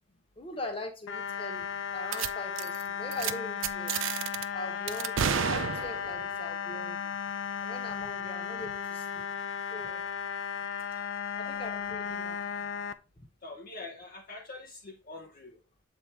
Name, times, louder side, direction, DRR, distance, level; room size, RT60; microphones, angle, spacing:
voice 1, 0.4-1.7 1.9-3.9 4.5-7.1 7.6-9.2 9.7-10.0 11.4-12.4, left 1 dB, 25° left, 4 dB, 1.2 m, -41 dB
sound 1, 1.1-12.9, left 7 dB, 75° left, 0.5 m, -35 dB
sound 2, 2.1-2.3 2.6-2.8 3.1-3.3 3.6-4.4 4.9-6.2, right 8 dB, 85° right, 0.5 m, -30 dB
voice 2, 13.4-15.6, left 3 dB, 45° left, 1 dB, 0.7 m, -45 dB
7.6 x 4.5 x 3.3 m, 0.31 s
head